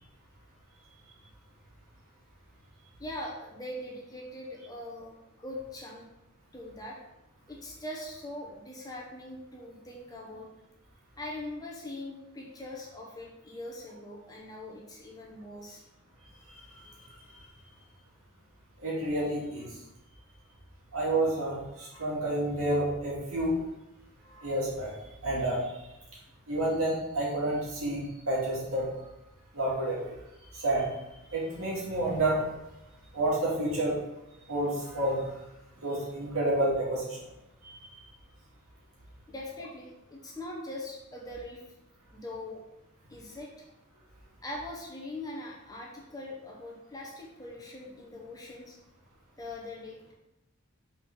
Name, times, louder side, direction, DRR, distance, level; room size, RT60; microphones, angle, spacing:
voice 1, 3.0-6.1 6.5-7.0 7.5-10.5 11.2-15.8 39.3-41.6 42.1-42.6 43.1-43.5 44.4-48.8 49.3-50.1, left 1 dB, 15° left, -2 dB, 0.9 m, -42 dB
voice 2, 18.8-19.7 20.9-23.6 24.4-24.9 25.2-25.6 26.5-28.8 29.5-30.1 30.5-30.9 31.3-32.4 33.1-34.0 34.5-35.2 35.8-37.2 37.6-37.8, right 1 dB, 70° right, -6 dB, 2.3 m, -29 dB
6.0 x 4.3 x 3.7 m, 0.91 s
head